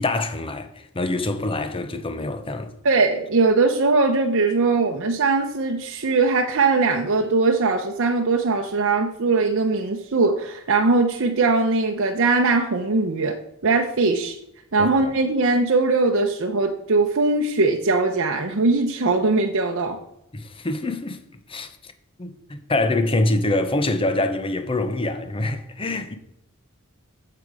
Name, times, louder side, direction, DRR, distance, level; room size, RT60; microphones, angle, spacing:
voice 1, 0.0-2.7 14.8-14.9 20.3-21.2 21.5-21.7 22.2-26.1, left 2 dB, 25° left, 0.8 m, -25 dB
voice 2, 2.8-13.4 13.6-14.4 14.7-20.0, right 3 dB, 60° right, 0.8 m, -20 dB
8.9 x 6.8 x 4.7 m
head